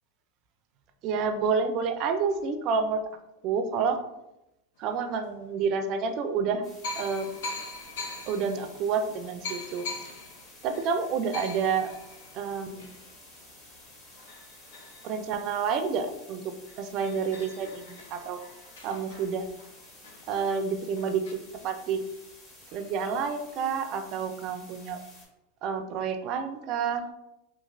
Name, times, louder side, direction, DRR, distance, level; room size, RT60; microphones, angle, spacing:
voice 1, 1.0-3.0 3.4-4.0 4.8-6.6 7.0-7.4 8.3-9.8 10.6-11.9 12.3-12.8 15.0-18.4 18.8-19.5 20.3-22.0 22.7-25.0 25.6-27.0, right 5 dB, 45° right, 8 dB, 0.3 m, -29 dB
sound 1, 5.1-5.2 6.1-6.2 6.8-16.0 16.4-16.5 16.7-21.3, left 3 dB, 75° left, 0.6 m, -43 dB
sound 2, 6.6-25.3, left 1 dB, 25° left, 1.2 m, -52 dB
2.9 x 2.5 x 2.5 m, 0.88 s
supercardioid pair, 130°, 0 cm